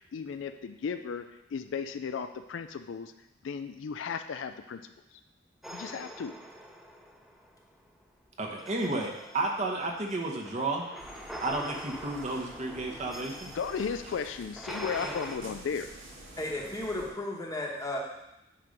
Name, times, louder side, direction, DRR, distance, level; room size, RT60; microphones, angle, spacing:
voice 1, 0.0-3.1 3.4-4.9 5.7-6.4 13.5-15.9, left 6 dB, 70° left, 10 dB, 0.4 m, -35 dB
sound 1, 5.6-7.6 8.6-15.3, equal, ahead, 0.6 m, -44 dB
voice 2, 8.4-10.9 11.4-13.5 15.0-15.1, right 2 dB, 40° right, 0 dB, 1.0 m, -32 dB
sound 2, 11.0-17.1, right 1 dB, 85° right, 1.8 m, -49 dB
voice 3, 16.4-18.0, left 1 dB, 20° left, -1 dB, 1.1 m, -34 dB
8.8 x 3.1 x 5.2 m, 0.89 s
head